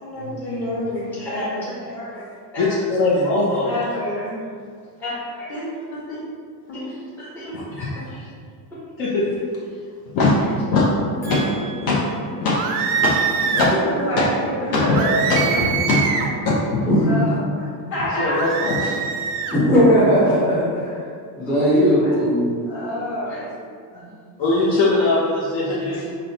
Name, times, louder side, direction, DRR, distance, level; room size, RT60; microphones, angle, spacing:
voice 1, 0.0-1.7 3.6-4.4 5.5-6.2 6.7-7.0 7.4-7.5 13.5-15.7 16.7-18.4 21.7-22.2 22.6-23.6, equal, 35° left, -8 dB, 1.3 m, -27 dB
voice 2, 1.1-2.2 2.5-3.9 5.0-5.2 5.5-5.6 6.8-7.5 7.8-8.2 11.2-12.4 16.9-17.2 18.6-18.7 19.5-21.1 21.4-22.6 23.2-23.5 23.9-24.1 25.6-26.1, equal, 5° left, -11 dB, 0.6 m, -22 dB
voice 3, 2.6-3.7 7.5-7.6 9.0-9.3 10.1-10.3 10.7-10.9 11.2-11.4 11.8-12.0 12.4-12.6 12.9-13.1 13.5-13.7 14.2-14.3 14.7-14.8 15.3-15.4 15.9-16.0 16.4-16.8 18.2-19.0 24.4-26.1, left 3 dB, 50° left, -6 dB, 0.7 m, -20 dB
sound 1, 12.5-13.7 14.9-16.4 18.3-19.6, right 6 dB, 70° right, 0.5 m, -23 dB
5.3 x 2.1 x 2.7 m, 2.1 s
cardioid pair, 165°, 43 cm